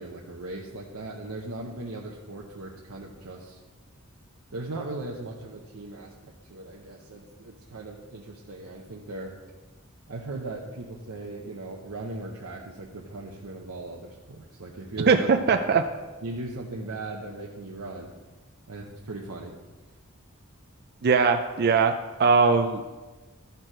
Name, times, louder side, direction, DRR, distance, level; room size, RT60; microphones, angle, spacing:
voice 1, 0.0-3.6 4.5-9.3 10.1-15.3 16.2-18.1 18.7-19.6, right 2 dB, 90° right, -1 dB, 0.9 m, -38 dB
voice 2, 15.1-15.8 21.0-21.9 22.2-22.9, right 5 dB, 45° right, 6 dB, 0.4 m, -20 dB
12.5 x 4.5 x 5.0 m, 1.3 s
head